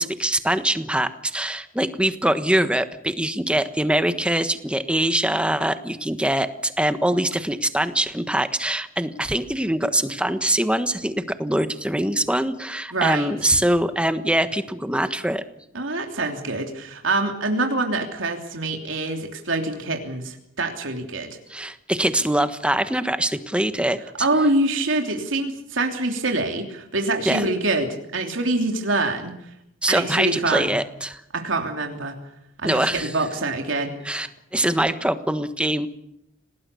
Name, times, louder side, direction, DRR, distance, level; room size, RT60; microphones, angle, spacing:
voice 1, 0.0-15.4 21.5-24.3 27.2-27.4 29.8-31.2 32.6-33.1 34.0-34.3 34.5-35.9, right 1 dB, 5° right, 10 dB, 1.3 m, -23 dB
voice 2, 12.9-13.3 15.7-21.4 24.2-29.3 29.9-30.7 31.3-32.1 32.6-34.3, right 2 dB, 70° right, 3 dB, 3.2 m, -25 dB
27.5 x 19.0 x 7.0 m, 0.80 s
head